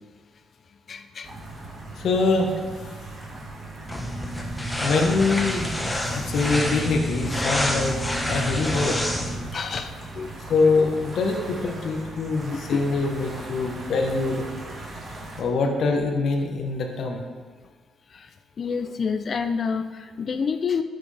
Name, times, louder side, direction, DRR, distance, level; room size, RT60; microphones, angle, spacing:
voice 1, 0.9-1.3 9.5-10.3 12.5-12.9 18.1-18.3 18.6-20.8, left 5 dB, 45° left, 9 dB, 0.5 m, -28 dB
sound 1, 1.2-15.4, right 2 dB, 45° right, 2.0 m, -39 dB
voice 2, 2.0-2.5 3.3-3.4 4.8-5.7 6.1-9.0 10.5-14.5 15.4-17.2, left 3 dB, 65° left, 2 dB, 1.2 m, -24 dB
sound 2, 3.9-9.5, equal, 10° left, 1.0 m, -27 dB
12.5 x 6.0 x 3.4 m, 1.4 s
cardioid pair, 90°, 0 cm